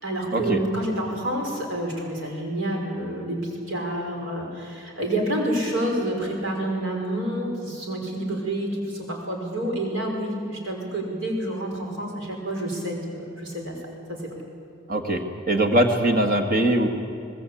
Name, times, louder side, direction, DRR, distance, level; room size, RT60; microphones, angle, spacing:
voice 1, 0.0-13.8 14.1-14.3, right 1 dB, 65° right, 1 dB, 5.5 m, -28 dB
voice 2, 14.9-16.9, right 1 dB, 40° right, 5 dB, 2.0 m, -21 dB
25.5 x 20.0 x 8.7 m, 2.4 s
head